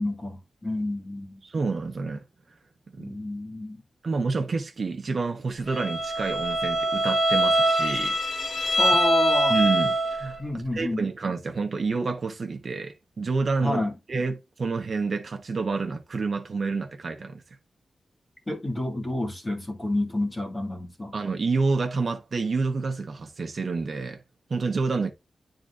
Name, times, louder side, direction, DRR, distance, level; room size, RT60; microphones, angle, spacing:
voice 1, 0.0-1.4 3.0-3.8 8.8-9.6 10.4-11.0 13.6-13.9 18.5-21.1, left 1 dB, 20° left, 1.8 m, -29 dB
voice 2, 1.4-2.2 2.9-3.2 4.0-8.2 8.5-8.8 9.5-10.4 10.7-13.8 14.1-17.4 21.1-24.2 24.5-25.1, right 4 dB, 50° right, 1.1 m, -28 dB
Bowed string instrument, 5.7-10.4, equal, 50° left, 1.4 m, -23 dB
10.5 x 3.8 x 2.5 m
wide cardioid pair, 140°, 0 cm